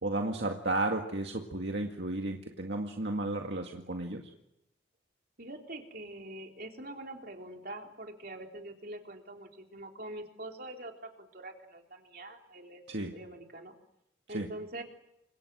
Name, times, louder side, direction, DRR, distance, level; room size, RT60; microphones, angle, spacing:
voice 1, 0.0-4.2 12.9-13.1 14.3-14.5, right 2 dB, 65° right, 2 dB, 2.0 m, -33 dB
voice 2, 5.4-12.8 13.1-13.7 14.3-14.8, right 1 dB, 50° right, 2 dB, 3.7 m, -44 dB
29.5 x 26.0 x 6.3 m, 0.84 s
head